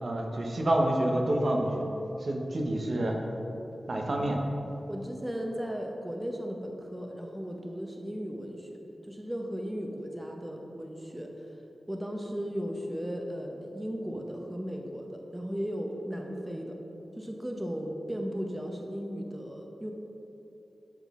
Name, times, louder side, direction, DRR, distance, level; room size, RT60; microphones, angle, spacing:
voice 1, 0.0-1.8 2.2-3.2 3.9-4.4, right 1 dB, 60° right, 1 dB, 0.9 m, -28 dB
voice 2, 4.9-11.5 11.9-16.8 17.2-19.9, equal, 15° right, 1 dB, 0.7 m, -36 dB
11.0 x 4.0 x 3.6 m, 3.0 s
cardioid pair, 55°, 0 cm